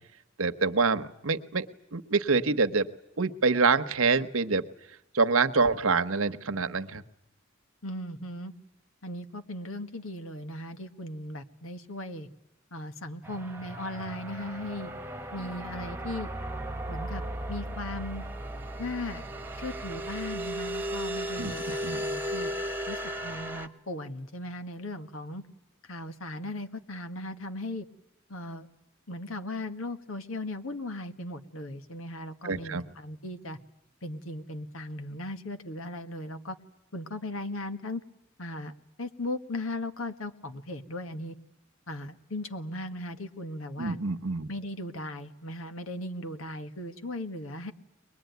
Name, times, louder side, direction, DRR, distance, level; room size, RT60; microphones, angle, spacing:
voice 1, 0.4-1.7 1.9-2.9 3.2-4.6 5.1-7.0 21.4-21.5 21.8-22.0 32.4-32.8 43.8-44.5, right 4 dB, 85° right, 10 dB, 1.1 m, -26 dB
voice 2, 7.8-8.5 9.0-12.3 12.7-14.9 15.3-16.3 16.9-17.2 17.5-18.2 18.8-19.2 19.6-22.5 22.9-25.4 25.8-27.8 28.3-28.7 29.1-33.6 34.0-36.6 36.9-38.0 38.4-38.7 39.0-41.4 41.9-44.0 44.5-47.7, left 1 dB, 90° left, 8 dB, 1.7 m, -37 dB
sound 1, 13.2-23.7, equal, 10° right, 1.4 m, -36 dB
23.0 x 21.0 x 9.4 m, 0.91 s
head